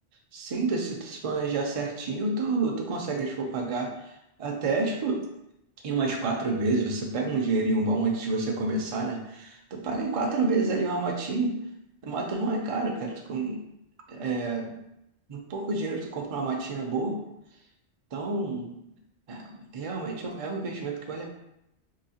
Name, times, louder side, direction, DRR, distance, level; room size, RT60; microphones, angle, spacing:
voice 1, 0.3-3.9 4.4-5.2 5.8-11.6 12.0-13.6 14.1-14.8 15.3-17.2 18.1-18.7 19.3-21.3, right 3 dB, 45° right, 1 dB, 0.5 m, -29 dB
3.9 x 2.7 x 2.8 m, 0.83 s
omnidirectional pair, 1.1 m